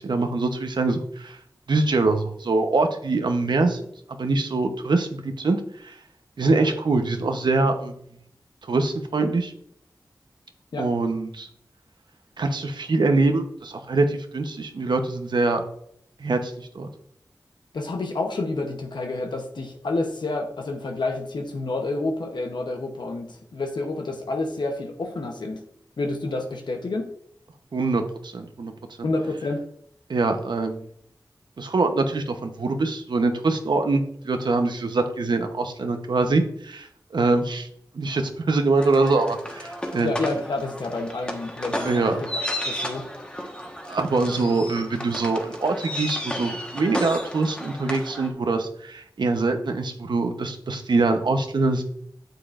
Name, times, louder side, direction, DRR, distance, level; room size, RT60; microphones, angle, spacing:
voice 1, 0.0-1.4 1.7-5.6 5.8-5.9 6.4-7.9 8.6-9.5 10.8-11.5 12.4-15.6 16.2-16.9 27.7-28.7 30.1-30.8 31.6-37.7 37.9-40.1 41.8-42.2 43.9-51.8, right 3 dB, 85° right, 6 dB, 0.9 m, -24 dB
voice 2, 17.7-25.7 26.0-27.1 29.0-29.7 40.0-43.3, left 2 dB, 85° left, 3 dB, 0.8 m, -29 dB
sound 1, 38.8-48.3, equal, 15° left, 1.3 m, -33 dB
9.1 x 6.9 x 2.5 m, 0.68 s
wide cardioid pair, 55°, 7 cm